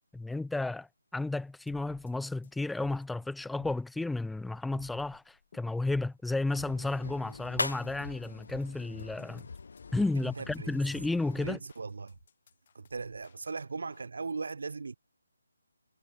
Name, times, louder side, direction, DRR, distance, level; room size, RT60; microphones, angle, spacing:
voice 1, 0.1-0.9 1.1-9.4 9.9-11.6, left 2 dB, ahead, 0.4 m, -32 dB
sound 1, 1.7-14.0, left 8 dB, 40° left, 2.2 m, -55 dB
sound 2, 4.4-9.9, left 2 dB, 90° left, 1.4 m, -42 dB
sound 3, 6.5-11.6, left 4 dB, 60° left, 3.5 m, -47 dB
voice 2, 10.1-10.8 11.4-12.2 12.7-15.0, right 4 dB, 65° right, 1.0 m, -38 dB
figure-of-eight pair, 165°, 0 cm